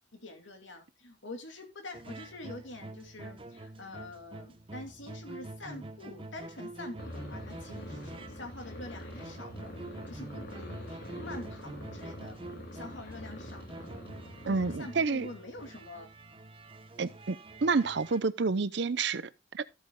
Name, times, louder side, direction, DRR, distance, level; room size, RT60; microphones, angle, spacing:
voice 1, 0.1-12.4 12.7-13.9 14.5-16.1 17.0-17.2, left 2 dB, 85° left, 2.4 m, -46 dB
sound 1, 1.9-18.2, right 2 dB, 30° right, 0.8 m, -46 dB
sound 2, 7.0-14.8, equal, 60° left, 2.9 m, -44 dB
voice 2, 14.5-15.3 17.0-19.6, right 4 dB, 65° right, 0.6 m, -29 dB
14.5 x 8.5 x 2.2 m
head